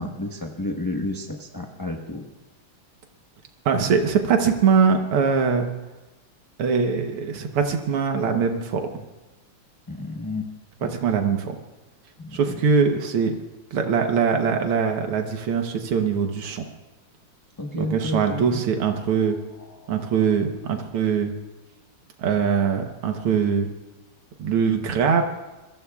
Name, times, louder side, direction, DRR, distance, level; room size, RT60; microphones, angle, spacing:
voice 1, 0.0-2.2 9.9-10.5 10.8-10.9 12.2-12.6 17.6-18.6 19.6-20.1, left 2 dB, 15° left, 0 dB, 0.8 m, -31 dB
voice 2, 3.7-5.7 6.6-9.0 10.8-11.6 12.3-13.4 13.7-16.7 17.8-19.4 19.9-21.3 22.2-23.7 24.4-25.2, right 6 dB, 90° right, 4 dB, 2.0 m, -22 dB
27.0 x 22.5 x 2.4 m, 1.1 s
omnidirectional pair, 2.3 m